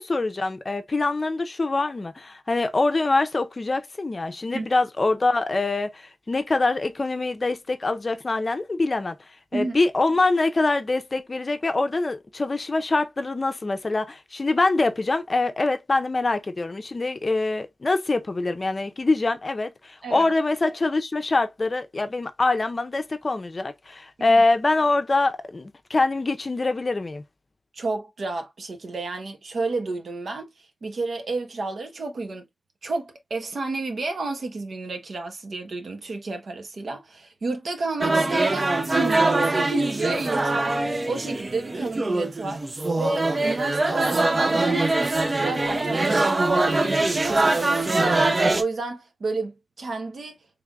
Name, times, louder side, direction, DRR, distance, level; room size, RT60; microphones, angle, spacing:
voice 1, 0.0-9.2 9.5-27.2, left 3 dB, 40° left, 0.5 m, -24 dB
voice 2, 27.7-30.5 30.8-32.4 32.8-40.7 41.0-46.3 46.7-50.4, right 3 dB, 75° right, 1.0 m, -31 dB
sound 1, 38.0-48.6, right 2 dB, 40° right, 0.6 m, -23 dB
3.7 x 3.4 x 2.3 m
wide cardioid pair, 90°, 0 cm